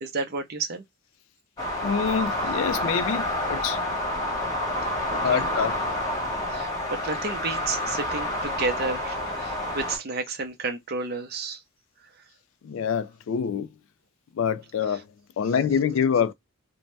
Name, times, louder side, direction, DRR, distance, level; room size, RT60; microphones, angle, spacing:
voice 1, 0.0-0.8 5.1-5.5 6.5-11.6 14.9-15.0 15.4-15.5, right 3 dB, 45° right, 0.6 m, -31 dB
sound 1, 1.6-10.0, left 1 dB, 15° left, 1.0 m, -28 dB
voice 2, 1.8-3.8 5.2-5.8 12.6-13.7 14.4-15.0 15.4-16.3, left 7 dB, 65° left, 0.3 m, -26 dB
2.7 x 2.1 x 3.2 m
head